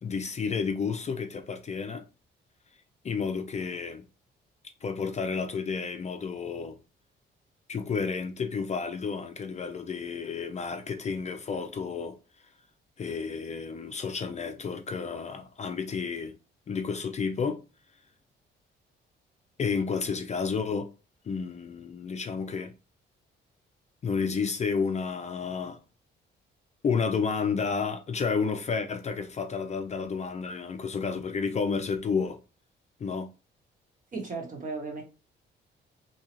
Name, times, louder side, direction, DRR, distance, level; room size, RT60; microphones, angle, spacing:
voice 1, 0.0-2.0 3.0-4.0 4.8-6.8 7.7-12.2 13.0-16.3 16.7-17.6 19.6-20.9 21.3-22.7 24.0-25.8 26.8-32.4 33.0-33.3, left 5 dB, 35° left, 0.4 m, -31 dB
voice 2, 34.1-35.0, right 4 dB, 40° right, 1.3 m, -35 dB
2.8 x 2.3 x 3.0 m
cardioid pair, 90°, 20 cm